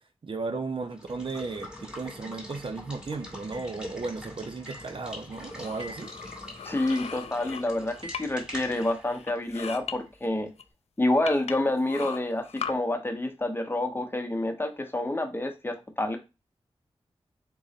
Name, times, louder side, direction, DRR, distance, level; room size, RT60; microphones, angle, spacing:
voice 1, 0.2-6.1, right 3 dB, 55° right, 0.7 m, -35 dB
Water / Water tap faucet / Liquid, 0.8-10.5, left 1 dB, 10° right, 1.9 m, -44 dB
sound 1, 3.5-3.8 4.7-5.0 5.8-6.2 6.9-7.2 8.0-8.4, right 1 dB, 75° right, 2.2 m, -45 dB
sound 2, 5.3-8.5 8.7-9.9 10.6-10.7 11.3-12.7, left 7 dB, 85° left, 0.4 m, -39 dB
voice 2, 6.6-10.5 11.0-16.2, left 1 dB, 20° left, 0.8 m, -28 dB
3.8 x 3.0 x 4.0 m
wide cardioid pair, 80°, 10 cm